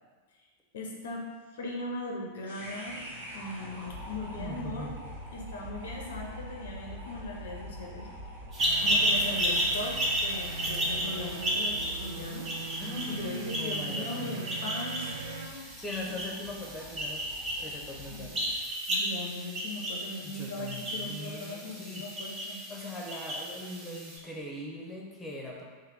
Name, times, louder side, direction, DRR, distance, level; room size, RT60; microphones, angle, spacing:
voice 1, 0.7-1.3 1.5-3.0 3.3-4.9 5.3-8.1 8.8-12.5 13.1-16.2 18.1-18.3 18.9-22.6, left 1 dB, 60° left, 0 dB, 0.5 m, -39 dB
sound 1, 2.4-18.7, equal, 80° right, 1.2 m, -46 dB
voice 2, 4.4-5.0 12.8-14.4 15.8-17.3 17.6-18.5 20.2-22.1 22.5-25.6, left 1 dB, 10° left, -2 dB, 0.8 m, -40 dB
sound 2, 8.5-24.2, equal, 25° right, 0.9 m, -33 dB
sound 3, 8.6-15.5, right 3 dB, 55° right, 0.3 m, -41 dB
3.3 x 2.6 x 3.8 m, 1.4 s
figure-of-eight pair, 90°, 0 cm